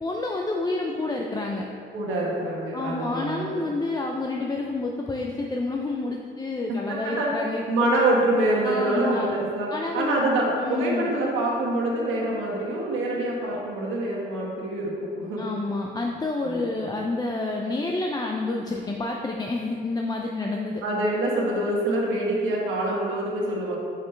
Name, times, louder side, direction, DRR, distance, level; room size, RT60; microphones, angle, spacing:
voice 1, 0.0-1.7 2.7-7.6 8.6-9.3 9.7-10.2 10.6-11.1 15.4-20.8, left 2 dB, 20° left, 0 dB, 0.5 m, -29 dB
voice 2, 1.9-3.6 6.9-7.3 7.7-15.5 16.4-16.7 20.8-23.8, right 1 dB, 90° right, -3 dB, 1.5 m, -25 dB
7.3 x 5.0 x 3.3 m, 2.5 s
cardioid pair, 90°, 20 cm